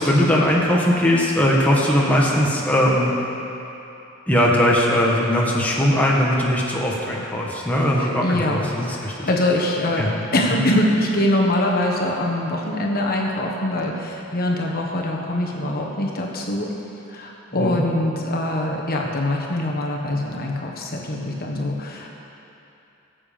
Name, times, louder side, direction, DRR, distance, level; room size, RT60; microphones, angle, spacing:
voice 1, 0.0-3.1 4.3-9.3 10.0-10.6 17.5-17.8, equal, 5° left, -4 dB, 1.3 m, -20 dB
voice 2, 8.0-16.7 17.1-22.2, left 1 dB, 45° left, -1 dB, 1.4 m, -23 dB
18.5 x 7.5 x 5.1 m, 2.9 s
head